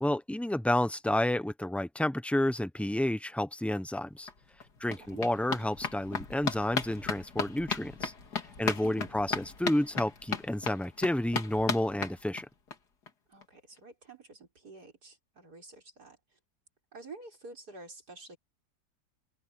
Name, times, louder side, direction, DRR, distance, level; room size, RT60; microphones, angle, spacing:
voice 1, 0.0-4.3 4.8-8.1 8.6-12.5, left 1 dB, ahead, 0.7 m, -30 dB
sound 1, 4.0-4.1 4.3-12.8 13.1-13.2 13.4-13.5 13.8-13.9, left 5 dB, 75° left, 2.7 m, -36 dB
voice 2, 8.6-9.1 13.3-16.2 16.9-18.4, right 3 dB, 65° right, 6.1 m, -50 dB
omnidirectional pair, 1.8 m